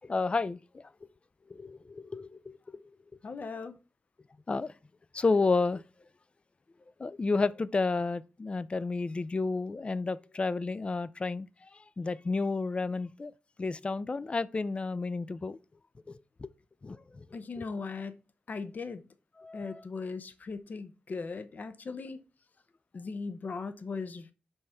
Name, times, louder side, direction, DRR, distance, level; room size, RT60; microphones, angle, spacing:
voice 1, 0.1-0.9 1.5-2.8 4.5-4.7 5.1-5.8 7.0-11.5 12.0-13.3 13.6-15.6 16.1-16.5 16.8-17.2 17.6-17.7 19.4-19.8, left 3 dB, 35° left, 0.4 m, -31 dB
voice 2, 3.2-3.8 17.3-18.1 18.5-19.0 19.5-22.2 22.9-24.3, left 4 dB, 55° left, 0.7 m, -38 dB
5.4 x 3.6 x 5.6 m
wide cardioid pair, 100°, 3 cm